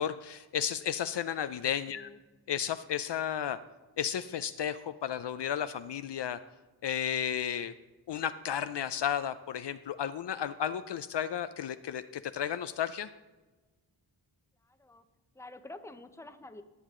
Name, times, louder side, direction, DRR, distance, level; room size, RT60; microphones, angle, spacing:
voice 1, 0.0-2.1 2.5-3.6 4.0-6.4 6.8-7.7 8.1-13.1, left 9 dB, 60° left, 12 dB, 0.5 m, -33 dB
voice 2, 15.4-16.6, left 2 dB, 5° left, 9 dB, 0.8 m, -47 dB
18.0 x 7.2 x 3.7 m, 1.2 s
cardioid pair, 65°, 48 cm